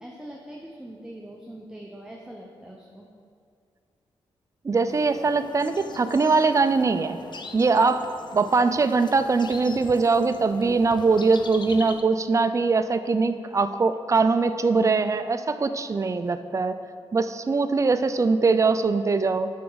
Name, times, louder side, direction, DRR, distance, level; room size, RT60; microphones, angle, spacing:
voice 1, 0.0-3.1, right 1 dB, 5° right, -1 dB, 0.9 m, -42 dB
voice 2, 4.6-7.2 7.5-8.1 8.3-16.7 17.1-19.5, right 4 dB, 30° right, 10 dB, 0.4 m, -22 dB
sound 1, 4.9-12.0, left 4 dB, 45° left, 0.6 m, -42 dB
9.4 x 5.9 x 4.0 m, 2.3 s
cardioid pair, 60°, 11 cm